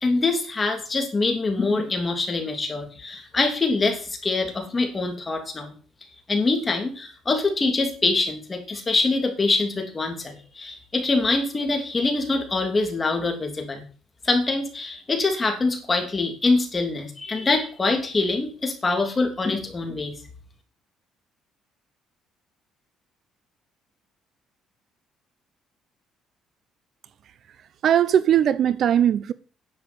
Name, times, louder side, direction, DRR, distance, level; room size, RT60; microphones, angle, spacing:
voice 1, 0.0-5.7 6.3-13.8 14.2-20.1, left 3 dB, 20° left, 2.9 m, -24 dB
voice 2, 27.8-29.3, right 10 dB, 50° right, 0.6 m, -19 dB
10.5 x 7.1 x 7.9 m
cardioid pair, 155°, 0 cm